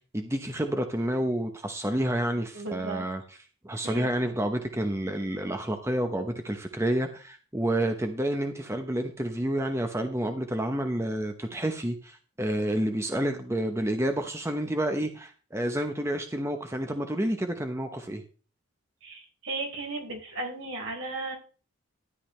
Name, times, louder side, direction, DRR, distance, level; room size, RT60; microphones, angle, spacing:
voice 1, 0.1-3.4 3.6-18.2, right 1 dB, 10° right, 5 dB, 0.9 m, -29 dB
voice 2, 2.5-3.1 3.8-4.1 19.0-21.3, right 2 dB, 70° right, 0 dB, 4.5 m, -35 dB
13.5 x 11.0 x 3.3 m, 0.38 s
head